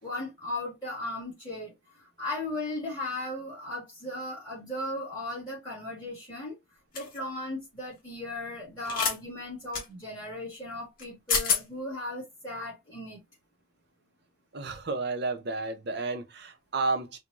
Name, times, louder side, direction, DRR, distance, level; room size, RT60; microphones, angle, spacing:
voice 1, 0.0-1.7 2.0-6.6 6.9-13.2, left 2 dB, 20° left, 1.7 m, -36 dB
sound 1, 6.9-7.2 8.8-9.2 9.7-9.8 11.0-11.1 11.3-11.6, left 5 dB, 45° left, 1.3 m, -27 dB
voice 2, 14.5-17.2, right 3 dB, 50° right, 0.7 m, -31 dB
4.5 x 2.2 x 2.5 m
head